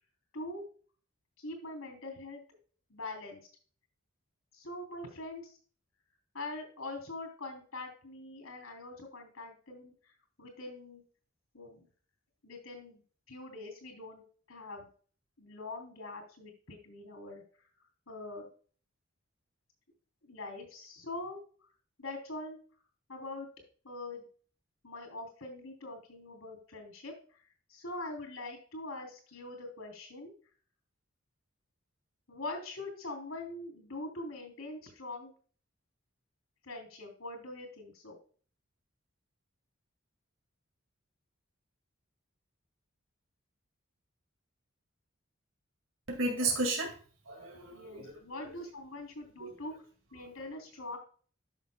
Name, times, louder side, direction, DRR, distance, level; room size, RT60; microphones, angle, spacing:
voice 1, 0.3-0.6 1.4-2.4 2.9-3.5 4.5-5.6 6.3-10.1 10.4-11.0 11.5-11.9 12.4-13.0 13.3-14.2 14.5-14.9 15.4-17.4 18.1-18.5 20.2-21.7 22.0-22.6 23.1-23.5 23.8-24.3 24.8-27.4 27.7-30.3 32.3-35.3 36.6-38.2 47.7-49.8 50.1-51.0, left 2 dB, 80° left, 4 dB, 3.2 m, -43 dB
voice 2, 46.1-47.0 47.3-48.1 49.4-49.5, right 2 dB, 70° right, 2 dB, 2.0 m, -33 dB
12.5 x 6.1 x 2.2 m, 0.42 s
head